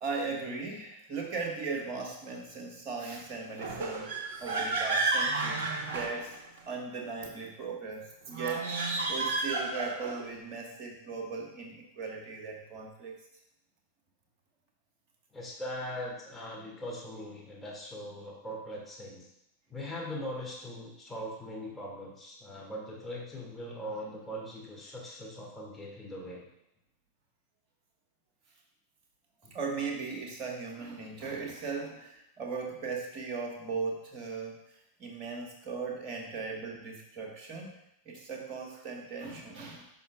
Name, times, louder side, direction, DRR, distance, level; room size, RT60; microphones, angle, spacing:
voice 1, 0.0-4.1 4.4-5.6 5.9-6.4 6.6-13.2 29.5-37.7 38.0-39.9, right 4 dB, 35° right, 1 dB, 1.6 m, -38 dB
sound 1, 3.6-6.7 8.3-10.3, right 3 dB, 55° right, 1.2 m, -31 dB
voice 2, 15.3-19.3 19.7-26.4, equal, 10° left, -5 dB, 2.4 m, -40 dB
10.5 x 5.5 x 2.5 m, 0.79 s
figure-of-eight pair, 90°, 0 cm